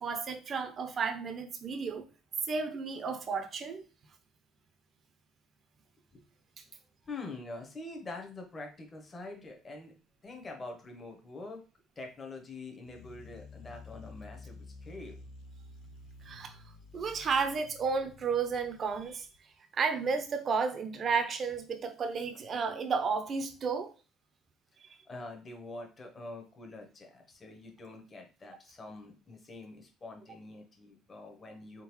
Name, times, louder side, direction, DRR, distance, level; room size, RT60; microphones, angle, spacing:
voice 1, 0.0-2.1 2.4-3.8 16.2-16.6 16.9-19.3 19.7-23.9, right 5 dB, 35° right, 7 dB, 0.6 m, -32 dB
voice 2, 7.1-9.9 10.2-11.6 12.0-15.3 25.1-31.8, left 2 dB, 25° left, 2 dB, 0.9 m, -45 dB
sound 1, 12.9-19.4, left 3 dB, 75° left, 0.4 m, -51 dB
3.7 x 3.7 x 3.0 m, 0.33 s
cardioid pair, 135°, 0 cm